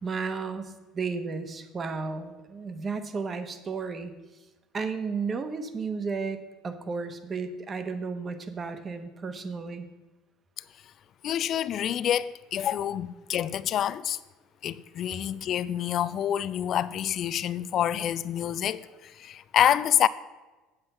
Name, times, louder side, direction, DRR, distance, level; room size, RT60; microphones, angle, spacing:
voice 1, 0.0-4.1 4.7-9.8, right 4 dB, 35° right, 1.1 m, -33 dB
voice 2, 11.2-14.2 14.6-20.1, left 10 dB, 50° left, 0.4 m, -27 dB
8.0 x 7.8 x 5.4 m
hypercardioid pair, 80°, 0 cm